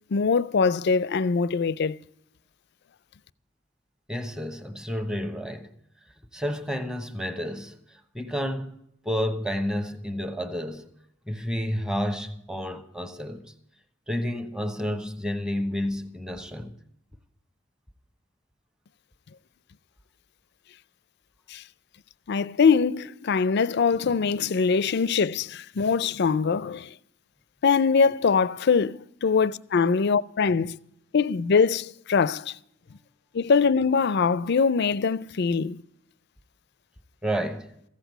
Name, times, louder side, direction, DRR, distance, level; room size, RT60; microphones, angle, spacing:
voice 1, 0.1-2.0 21.5-21.6 22.3-26.9 27.6-30.8 31.1-32.5 33.3-35.8, left 5 dB, 60° left, 0.4 m, -23 dB
voice 2, 4.1-5.7 6.3-7.7 8.1-8.8 9.0-10.9 11.3-13.5 14.1-16.8 37.2-37.7, equal, 5° right, 1.0 m, -30 dB
15.0 x 8.1 x 9.1 m
head